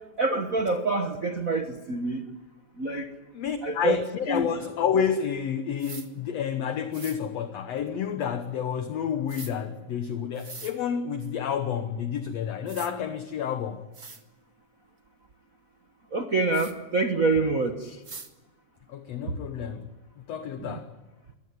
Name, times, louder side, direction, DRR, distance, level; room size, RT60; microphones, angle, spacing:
voice 1, 0.2-2.2 2.8-3.1 3.6-4.0 4.3-4.5 16.1-17.7 20.6-20.8, right 3 dB, 65° right, 0.8 m, -26 dB
voice 2, 3.3-13.8 18.9-19.9 20.3-20.9, left 7 dB, 65° left, 1.9 m, -29 dB
sound 1, 5.8-6.1 6.9-7.2 9.3-9.5 10.3-10.7 12.2-12.3 12.7-12.9 13.6-13.7 13.9-14.2 16.5-16.7 18.0-18.3, right 4 dB, 30° right, 1.5 m, -42 dB
23.5 x 19.5 x 9.5 m
omnidirectional pair, 3.7 m